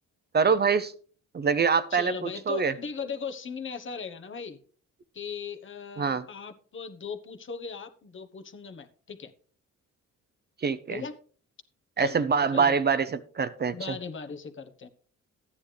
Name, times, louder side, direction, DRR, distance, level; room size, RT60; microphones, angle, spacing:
voice 1, 0.3-0.9 1.3-2.7 6.0-6.2 10.6-11.0 12.0-13.7, right 5 dB, 35° right, 12 dB, 0.7 m, -25 dB
voice 2, 1.9-4.6 5.1-9.3 10.9-11.2 12.0-12.8 13.7-14.9, left 5 dB, 40° left, 9 dB, 1.1 m, -38 dB
13.0 x 9.7 x 3.4 m, 0.43 s
cardioid pair, 90°, 30 cm